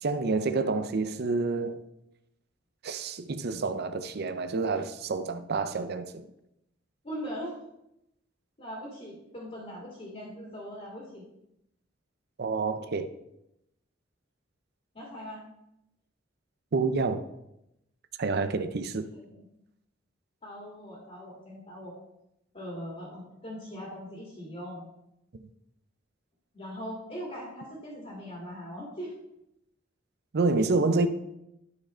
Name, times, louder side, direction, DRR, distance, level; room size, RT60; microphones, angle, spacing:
voice 1, 0.0-1.8 2.8-6.2 12.4-13.1 16.7-17.2 18.2-19.1 30.3-31.1, right 3 dB, 55° right, 0.5 m, -28 dB
voice 2, 7.0-7.5 8.6-11.2 14.9-15.5 19.1-19.5 20.4-21.9 22.5-24.8 26.5-29.2 30.9-31.1, equal, 35° left, 2.3 m, -40 dB
11.5 x 4.9 x 4.3 m
head